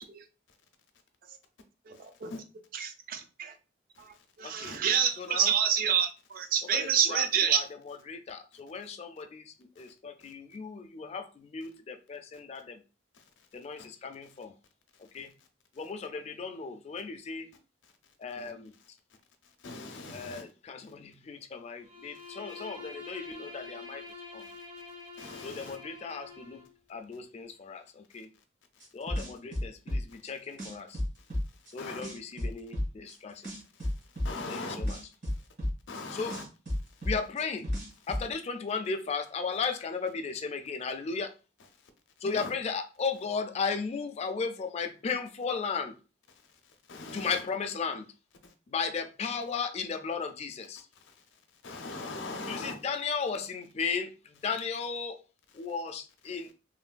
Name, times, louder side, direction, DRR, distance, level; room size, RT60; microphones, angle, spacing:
voice 1, 2.7-3.5 4.0-7.6, right 8 dB, 50° right, 0.4 m, -27 dB
voice 2, 4.4-4.8 5.2-5.5 6.7-12.8 13.5-14.5 15.0-15.3 15.8-17.5 18.2-18.7 20.1-24.0 24.3-24.5 25.4-26.6 26.9-28.3 28.9-31.0 31.7-33.5 34.5-35.0 36.1-36.4 37.0-37.7 38.1-41.3 42.2-46.0 47.1-48.1 48.7-50.9 52.5-55.2 55.5-56.5, left 5 dB, 35° left, 0.3 m, -35 dB
voice 3, 19.6-20.4 25.2-25.7 31.8-32.0 34.2-34.8 35.9-36.4 42.4-42.5 46.9-47.3 51.6-52.7, left 3 dB, 80° left, 0.6 m, -40 dB
Bowed string instrument, 21.8-26.7, left 4 dB, 90° right, 1.2 m, -46 dB
sound 1, 28.8-30.3 30.6-31.7 32.0-33.1 33.4-36.0 36.3-38.2, left 1 dB, 65° right, 1.4 m, -32 dB
3.1 x 2.2 x 2.4 m
head